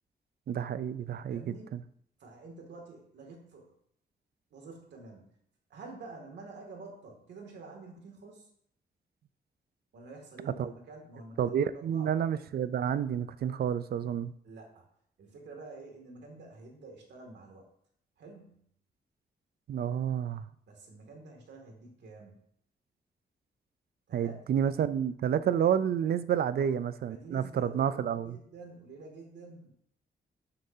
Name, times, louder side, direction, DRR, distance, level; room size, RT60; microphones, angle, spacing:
voice 1, 0.5-1.8 10.6-10.7 11.4-14.3 19.7-20.4 24.1-28.4, right 9 dB, 65° right, 0.5 m, -30 dB
voice 2, 1.3-1.7 2.2-3.7 4.5-5.3 5.7-8.5 9.9-12.1 14.4-14.8 15.2-17.7 18.2-18.6 20.7-22.4 24.1-24.4 26.5-26.7 27.1-29.7, right 3 dB, 85° right, 2.4 m, -48 dB
12.0 x 7.7 x 2.8 m
wide cardioid pair, 145°, 17 cm